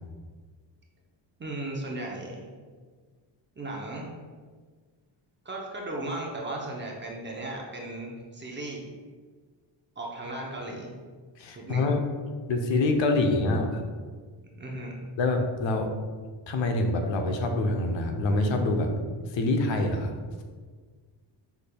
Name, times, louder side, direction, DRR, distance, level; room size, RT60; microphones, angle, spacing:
voice 1, 1.4-2.5 3.6-4.1 5.4-8.9 10.0-10.9 11.6-11.9 14.6-14.9, right 2 dB, 25° right, -2 dB, 0.7 m, -36 dB
voice 2, 11.4-12.0 12.5-13.8 15.2-15.9 16.5-18.9 19.3-20.2, left 2 dB, 70° left, 4 dB, 0.7 m, -25 dB
6.1 x 3.4 x 2.3 m, 1.5 s
cardioid pair, 115°, 48 cm